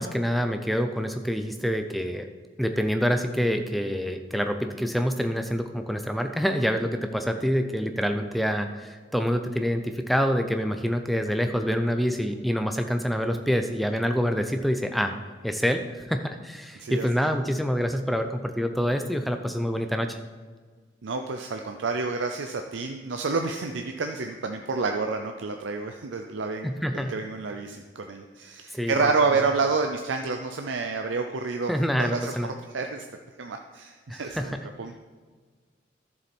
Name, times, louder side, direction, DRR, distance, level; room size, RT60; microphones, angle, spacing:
voice 1, 0.0-2.3 2.6-15.1 15.4-15.8 16.1-20.2 26.6-27.1 28.7-29.1 29.4-29.5 31.7-32.5 34.1-34.6, equal, ahead, 6 dB, 0.5 m, -26 dB
voice 2, 16.8-17.1 21.0-31.7 32.0-33.1 33.4-35.0, right 4 dB, 85° right, 5 dB, 0.5 m, -29 dB
11.0 x 7.1 x 4.3 m, 1.5 s
head